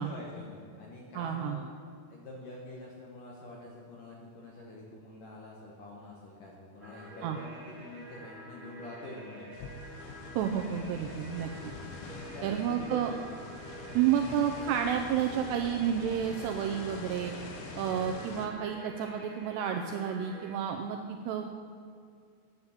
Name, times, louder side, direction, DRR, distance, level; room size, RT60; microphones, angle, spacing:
voice 1, 0.0-1.6 2.1-9.7 12.1-13.2, left 2 dB, 65° left, -3 dB, 2.1 m, -46 dB
voice 2, 1.1-1.6 7.2-7.4 10.4-11.7 12.4-13.1 13.9-17.3 17.8-21.5, right 9 dB, 90° right, 4 dB, 2.4 m, -30 dB
sound 1, 6.8-20.5, right 2 dB, 20° right, 2.7 m, -49 dB
sound 2, 9.5-18.5, left 4 dB, 90° left, 3.7 m, -45 dB
10.5 x 9.6 x 7.1 m, 2.4 s
omnidirectional pair, 5.6 m